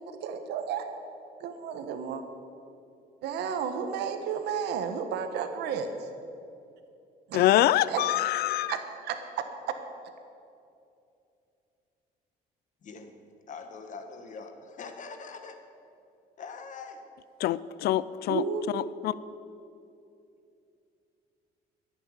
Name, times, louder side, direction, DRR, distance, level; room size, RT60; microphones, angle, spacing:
voice 1, 0.2-0.9 1.4-2.2 3.2-5.9 7.3-7.5 7.9-8.0 8.7-9.8 18.3-18.6, right 7 dB, 80° right, 7 dB, 1.4 m, -32 dB
voice 2, 7.3-8.7 17.4-18.4 18.7-19.1, left 13 dB, 70° left, 18 dB, 0.5 m, -25 dB
voice 3, 13.5-15.6 16.4-17.0, left 5 dB, 50° left, 6 dB, 1.6 m, -43 dB
11.0 x 8.9 x 9.8 m, 2.6 s
cardioid pair, 110°, 17 cm